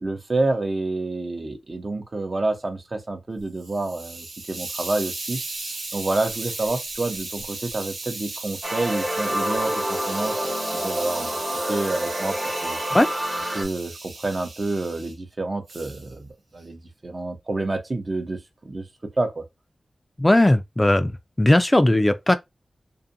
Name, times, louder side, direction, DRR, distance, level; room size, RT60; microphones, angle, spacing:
voice 1, 0.0-5.4 5.9-10.4 10.7-11.3 11.7-12.4 12.6-12.8 13.5-18.9 19.2-19.4, right 2 dB, 50° right, 0.7 m, -28 dB
Hiss, 3.4-15.1 15.7-16.1, right 3 dB, 90° right, 0.8 m, -35 dB
sound 1, 8.6-13.6, equal, 30° right, 0.9 m, -28 dB
voice 2, 20.2-21.1 21.4-22.4, left 1 dB, 20° left, 0.4 m, -17 dB
2.5 x 2.5 x 2.6 m
cardioid pair, 45°, 0 cm